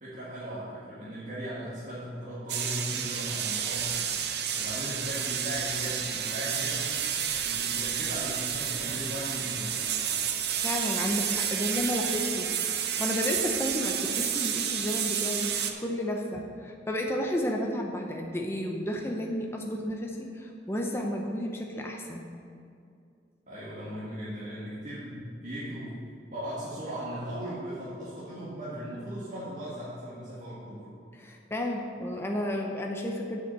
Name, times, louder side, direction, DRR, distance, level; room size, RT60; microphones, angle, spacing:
voice 1, 0.0-4.0 4.5-7.0 7.4-10.0 23.5-25.9 26.3-30.9, equal, 40° right, -10 dB, 1.9 m, -38 dB
sound 1, 2.5-15.7, right 8 dB, 60° right, 0.7 m, -30 dB
voice 2, 10.6-22.3 31.1-33.4, equal, 15° left, 0 dB, 0.7 m, -32 dB
7.6 x 6.6 x 6.8 m, 2.4 s
head